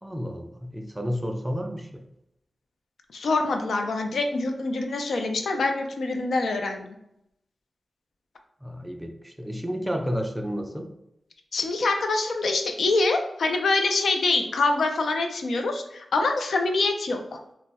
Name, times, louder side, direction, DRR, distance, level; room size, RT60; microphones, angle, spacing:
voice 1, 0.0-2.0 8.6-10.9, equal, 10° right, 4 dB, 0.3 m, -31 dB
voice 2, 3.1-6.9 11.5-17.4, left 3 dB, 85° left, 4 dB, 0.4 m, -25 dB
4.0 x 2.1 x 2.2 m, 0.80 s
wide cardioid pair, 155°, 0 cm